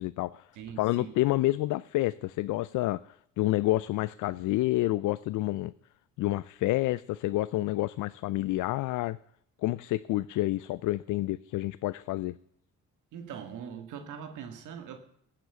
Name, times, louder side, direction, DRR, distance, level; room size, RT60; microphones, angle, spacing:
voice 1, 0.0-0.5 0.8-3.0 3.4-5.7 6.2-9.2 9.6-12.3, left 17 dB, 80° left, 17 dB, 0.5 m, -28 dB
voice 2, 0.5-1.1 13.1-15.0, right 8 dB, 80° right, 6 dB, 1.7 m, -42 dB
16.0 x 7.6 x 6.9 m, 0.71 s
cardioid pair, 90°, 30 cm